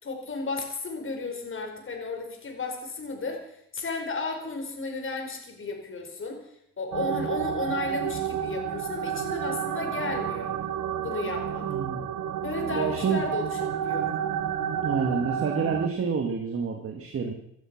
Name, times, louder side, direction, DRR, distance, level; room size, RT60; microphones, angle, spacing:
voice 1, 0.0-6.4 6.8-10.5 11.0-11.7 12.4-14.1, left 3 dB, 40° left, 3 dB, 4.9 m, -34 dB
sound 1, 6.9-15.9, right 9 dB, 75° right, 1.3 m, -30 dB
voice 2, 11.7-12.0 12.7-13.2 14.8-17.3, right 5 dB, 50° right, 4 dB, 2.1 m, -28 dB
17.0 x 12.0 x 6.1 m, 0.76 s
cardioid pair, 90°, 30 cm